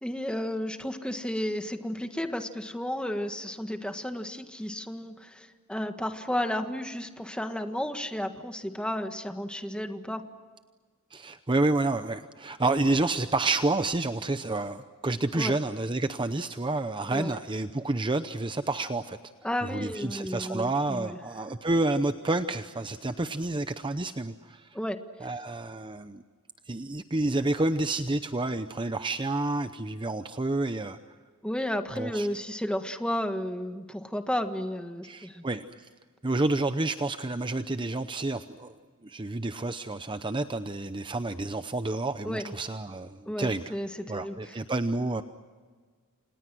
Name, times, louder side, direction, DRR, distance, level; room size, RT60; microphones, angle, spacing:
voice 1, 0.0-10.2 15.3-15.5 17.1-17.4 19.4-21.2 24.7-25.0 31.4-35.4 42.2-42.5 43.2-44.6, left 1 dB, 5° left, 7 dB, 1.5 m, -33 dB
voice 2, 11.1-19.2 19.7-24.8 25.2-26.2 26.7-31.0 31.9-32.3 35.0-35.9 36.2-38.7 39.0-43.7 44.1-45.2, right 2 dB, 20° right, 10 dB, 0.7 m, -29 dB
29.5 x 27.0 x 6.2 m, 1.5 s
head